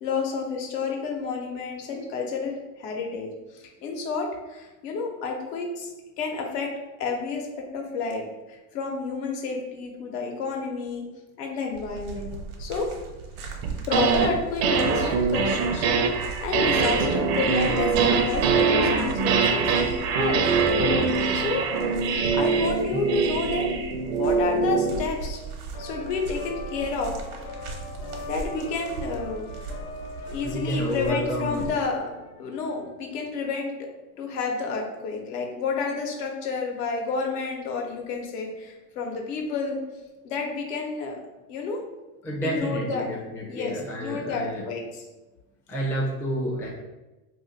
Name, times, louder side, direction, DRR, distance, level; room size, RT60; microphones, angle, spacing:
voice 1, 0.0-5.9 6.2-6.7 7.0-7.5 7.7-11.1 11.4-12.3 12.6-12.9 13.9-19.7 20.2-20.4 21.3-21.7 22.3-25.4 25.8-27.2 28.3-29.5 30.3-32.0 32.4-33.9 34.2-39.8 40.2-41.2 41.5-41.8 42.4-43.1 43.5-45.0, left 4 dB, 80° left, 1 dB, 0.9 m, -30 dB
sound 1, 11.7-31.7, right 3 dB, 75° right, 0.9 m, -39 dB
sound 2, 13.6-14.3 14.6-25.0, right 4 dB, 55° right, 0.5 m, -23 dB
sound 3, 25.7-33.3, left 2 dB, 60° left, 0.6 m, -41 dB
voice 2, 30.4-31.7 42.2-44.6 45.7-46.7, equal, 5° left, -4 dB, 0.4 m, -29 dB
2.5 x 2.4 x 3.9 m, 1.1 s
supercardioid pair, 115°, 47 cm